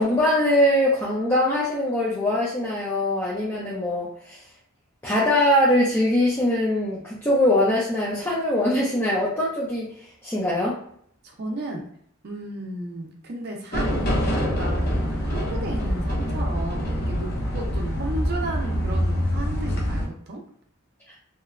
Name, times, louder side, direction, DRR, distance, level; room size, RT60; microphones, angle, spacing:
voice 1, 0.0-4.4 5.0-9.9 10.2-10.8, left 1 dB, 10° left, -7 dB, 0.5 m, -22 dB
voice 2, 11.2-11.8 12.2-20.4, right 1 dB, 50° right, 1 dB, 0.5 m, -34 dB
sound 1, 13.7-20.0, equal, 50° left, 0.7 m, -25 dB
2.9 x 2.1 x 2.4 m, 0.64 s
head